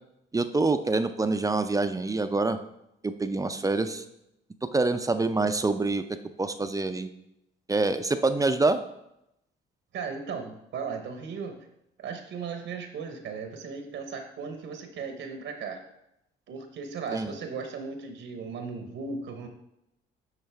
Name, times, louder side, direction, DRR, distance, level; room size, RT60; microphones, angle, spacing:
voice 1, 0.3-2.6 3.0-4.0 4.7-6.0 6.4-7.1 7.7-8.8 17.1-17.3, right 3 dB, 15° right, 9 dB, 0.4 m, -26 dB
voice 2, 9.9-11.6 12.0-15.8 16.5-19.5, right 5 dB, 75° right, 6 dB, 0.9 m, -36 dB
10.5 x 3.9 x 3.4 m, 0.83 s
cardioid pair, 90°, 20 cm